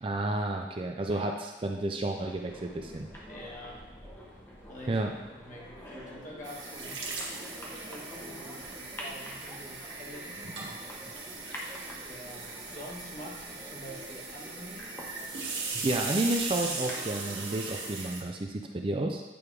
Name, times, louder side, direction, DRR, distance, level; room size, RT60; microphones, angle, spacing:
voice 1, 0.0-3.1 4.9-5.1 15.8-19.2, right 2 dB, 30° right, 3 dB, 0.4 m, -31 dB
sound 1, 2.2-17.0, equal, 10° left, 0.8 m, -46 dB
voice 2, 3.3-3.8 4.7-5.0 5.4-10.4 12.0-15.0, equal, 45° left, -4 dB, 1.5 m, -46 dB
sound 2, 6.4-18.2, right 3 dB, 85° right, 1.5 m, -39 dB
8.6 x 3.5 x 4.7 m, 1.1 s
head